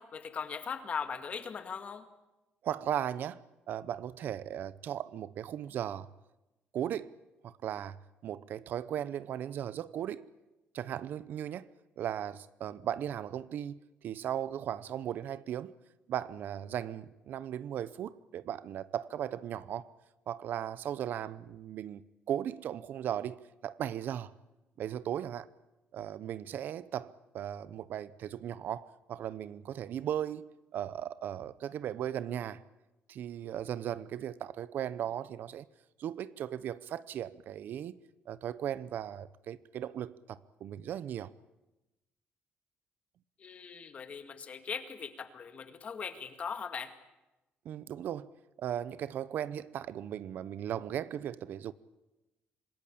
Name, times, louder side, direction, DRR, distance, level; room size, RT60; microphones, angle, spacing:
voice 1, 0.0-2.1 43.4-46.9, left 6 dB, 35° left, 2.0 m, -39 dB
voice 2, 2.6-6.1 6.7-7.2 7.4-8.0 8.2-10.3 10.7-11.7 12.0-15.7 16.1-19.9 20.3-22.0 22.3-23.4 23.6-24.3 24.8-25.5 25.9-32.6 33.1-35.6 36.0-38.0 38.3-41.3 47.6-48.3 48.6-51.7, right 10 dB, 60° right, 0.8 m, -37 dB
26.0 x 20.5 x 8.6 m
cardioid pair, 155°, 4 cm